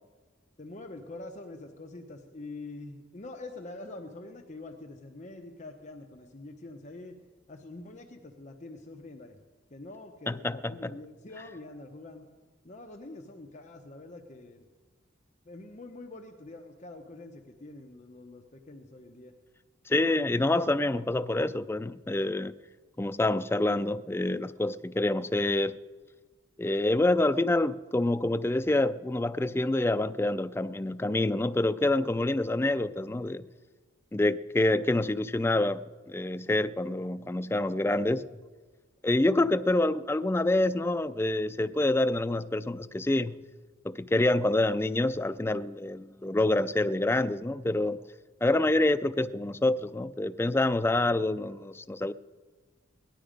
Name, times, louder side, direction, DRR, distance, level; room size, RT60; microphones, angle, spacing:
voice 1, 0.6-7.2 7.5-9.4 9.7-12.3 12.6-14.6 15.5-19.3, left 2 dB, 35° left, 0.8 m, -45 dB
voice 2, 10.3-11.0 19.9-22.5 23.0-25.8 26.6-33.5 34.1-38.2 39.0-43.4 43.8-48.0 48.4-52.1, left 2 dB, 10° left, 0.3 m, -27 dB
18.0 x 11.5 x 5.1 m
head